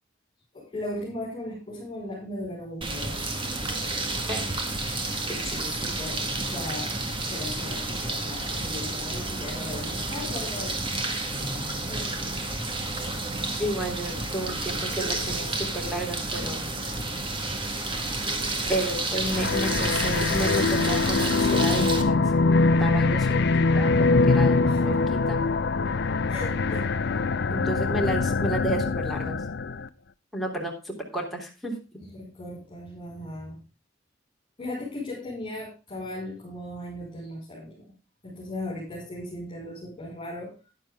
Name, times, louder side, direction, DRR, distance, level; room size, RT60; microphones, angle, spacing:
voice 1, 0.5-3.4 5.8-7.0 7.3-11.0 11.9-12.7 24.7-24.8 26.3-26.9 32.1-33.6 34.6-37.9 38.2-40.6, left 1 dB, 25° left, -4 dB, 5.6 m, -37 dB
sound 1, 2.8-22.0, right 2 dB, 25° right, 1.8 m, -30 dB
voice 2, 5.3-5.7 13.6-16.6 18.7-22.3 22.8-25.4 27.5-29.4 30.3-31.7, right 1 dB, ahead, -2 dB, 3.3 m, -32 dB
sound 2, 19.3-29.9, left 3 dB, 60° left, 0.6 m, -23 dB
12.0 x 10.5 x 3.6 m, 0.30 s
head